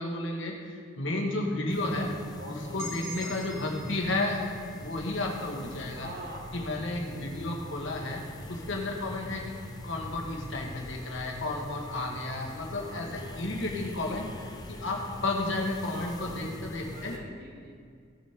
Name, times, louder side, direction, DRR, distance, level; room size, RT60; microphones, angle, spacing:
voice 1, 0.0-2.2 2.5-6.1 6.5-8.2 8.5-9.6 9.8-17.2, left 2 dB, 70° left, 0 dB, 1.8 m, -32 dB
sound 1, 1.7-17.2, left 1 dB, 20° left, 0.9 m, -43 dB
voice 2, 2.4-3.7 5.9-6.5 6.8-7.1 7.8-8.3 12.7-13.5 15.9-16.6 16.9-17.7, right 1 dB, 55° right, 0 dB, 2.0 m, -46 dB
sound 2, 2.8-6.6, equal, 80° right, 2.2 m, -46 dB
19.0 x 7.2 x 3.8 m, 2.2 s
head